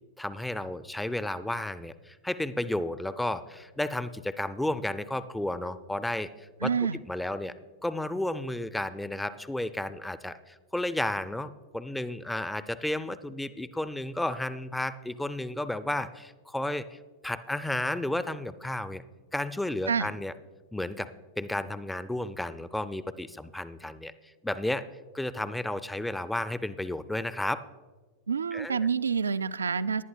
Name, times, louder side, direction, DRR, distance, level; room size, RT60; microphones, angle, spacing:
voice 1, 0.2-6.7 7.1-7.5 7.8-19.0 19.3-20.3 20.7-21.1 21.4-24.9 25.1-27.6 28.5-28.8, left 1 dB, 5° left, 13 dB, 0.4 m, -32 dB
voice 2, 6.6-7.0 19.9-20.1 28.3-30.0, right 6 dB, 75° right, 15 dB, 0.3 m, -28 dB
19.0 x 11.0 x 2.3 m, 1.4 s
figure-of-eight pair, 90°, 0 cm